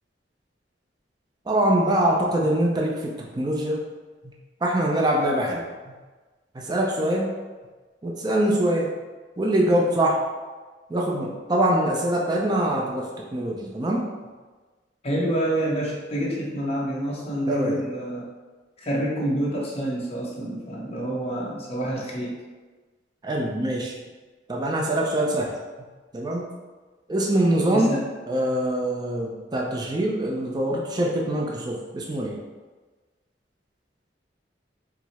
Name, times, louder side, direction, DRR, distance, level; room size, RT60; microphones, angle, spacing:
voice 1, 1.5-3.8 4.2-4.3 4.6-5.9 6.5-7.3 8.0-8.9 9.4-10.2 10.9-14.1 17.5-17.8 23.2-24.0 24.5-25.5 26.1-26.5 27.1-32.4, right 1 dB, 25° right, -2 dB, 0.4 m, -24 dB
voice 2, 15.0-18.3 18.8-22.3 27.7-28.0, right 1 dB, 35° left, -4 dB, 0.9 m, -27 dB
4.6 x 2.0 x 4.1 m, 1.3 s
head